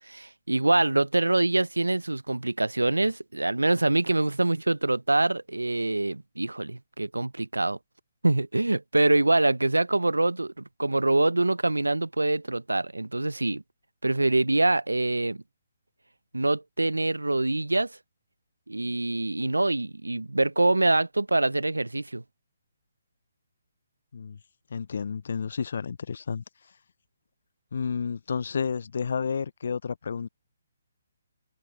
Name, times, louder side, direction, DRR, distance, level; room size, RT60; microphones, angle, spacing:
voice 1, 0.1-7.8 8.2-13.6 14.0-15.4 16.3-18.0 18.7-22.2, right 2 dB, 85° right, 0.8 m, -25 dB
voice 2, 24.7-26.4 27.7-30.3, left 6 dB, 60° left, 0.8 m, -31 dB
figure-of-eight pair, 135°, 0 cm